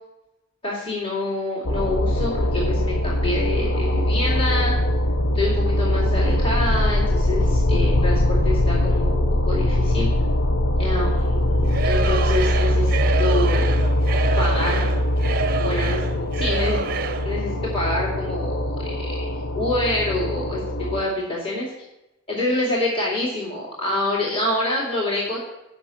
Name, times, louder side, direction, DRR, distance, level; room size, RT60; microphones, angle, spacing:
voice 1, 0.6-4.7 5.3-10.1 10.8-13.7 14.4-14.9 15.6-16.0 16.3-16.8 17.2-21.7 22.3-25.4, left 2 dB, 25° left, -6 dB, 2.4 m, -26 dB
sound 1, 1.6-21.0, left 1 dB, 70° left, 0.8 m, -22 dB
Singing / Crowd, 11.7-17.3, right 5 dB, 45° right, 0.6 m, -28 dB
8.8 x 5.9 x 7.6 m, 0.94 s
head